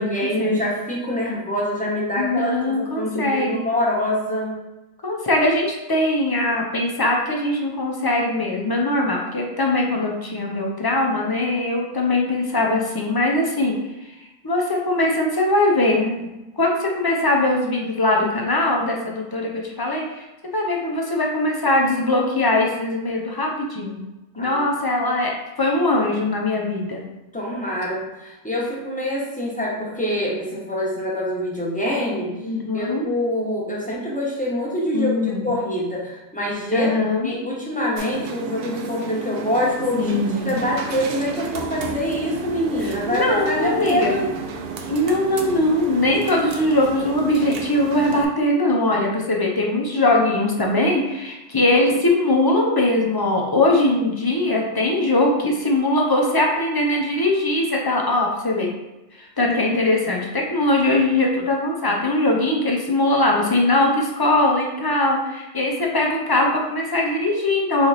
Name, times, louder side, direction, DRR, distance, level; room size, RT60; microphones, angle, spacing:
voice 1, 0.0-4.5 24.4-24.6 27.3-32.3 32.7-36.9 37.2-44.3, left 1 dB, 5° left, -5 dB, 1.0 m, -25 dB
voice 2, 2.2-3.6 5.0-13.8 14.4-16.3 16.6-20.2 20.5-24.0 24.4-25.3 25.6-27.0 32.4-33.0 34.9-35.5 36.7-37.3 40.0-40.6 42.8-44.1 44.9-58.7 59.2-67.9, left 2 dB, 30° left, -1 dB, 0.5 m, -21 dB
sound 1, 38.0-48.3, right 5 dB, 65° right, 0.7 m, -32 dB
4.0 x 3.1 x 4.0 m, 1.0 s
omnidirectional pair, 1.2 m